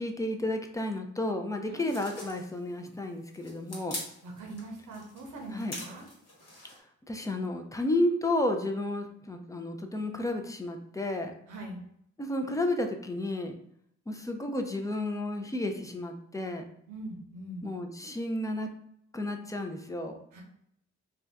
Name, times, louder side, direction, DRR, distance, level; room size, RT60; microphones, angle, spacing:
voice 1, 0.0-4.0 5.5-5.7 7.1-11.3 12.2-13.5 14.1-16.6 17.6-18.7 19.1-20.2, left 1 dB, 10° left, 4 dB, 0.4 m, -32 dB
sound 1, 1.8-6.8, left 2 dB, 55° left, 1.3 m, -44 dB
voice 2, 4.2-6.0 11.5-11.8 16.9-17.7 20.3-20.4, right 1 dB, 85° right, 1 dB, 0.8 m, -42 dB
2.6 x 2.3 x 3.4 m, 0.71 s
cardioid pair, 60°, 30 cm